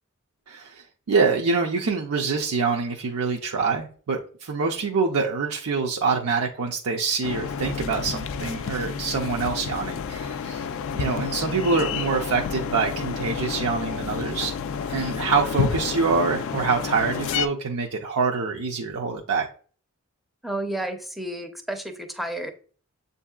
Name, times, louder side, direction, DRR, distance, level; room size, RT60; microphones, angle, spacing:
voice 1, 0.5-10.7 10.9-14.5 14.9-19.5, right 4 dB, 75° right, 0 dB, 0.5 m, -25 dB
sound 1, 7.2-17.5, left 6 dB, 60° left, 0.3 m, -30 dB
voice 2, 20.4-22.5, right 1 dB, ahead, 6 dB, 0.5 m, -31 dB
7.2 x 2.7 x 2.3 m, 0.42 s
head